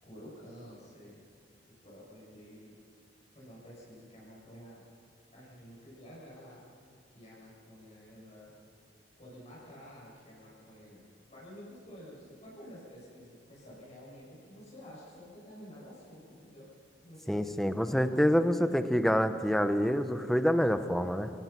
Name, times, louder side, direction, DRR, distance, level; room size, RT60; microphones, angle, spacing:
voice 1, 0.0-1.2 1.7-2.7 3.3-4.8 5.3-6.6 7.1-8.5 9.2-16.7 17.0-18.3, equal, 40° left, -6 dB, 7.5 m, -50 dB
voice 2, 17.3-21.3, equal, ahead, 9 dB, 0.9 m, -27 dB
28.5 x 18.0 x 6.0 m, 2.3 s
head